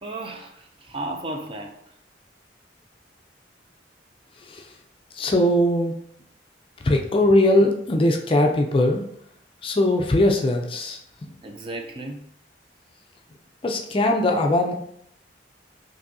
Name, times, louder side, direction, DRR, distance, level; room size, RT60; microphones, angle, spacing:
voice 1, 0.0-1.9 11.4-12.3, right 2 dB, 30° right, 3 dB, 0.4 m, -34 dB
voice 2, 5.2-6.0 6.8-9.0 9.6-11.0 13.6-14.7, left 1 dB, 30° left, 2 dB, 0.4 m, -20 dB
5.9 x 2.7 x 2.6 m, 0.72 s
head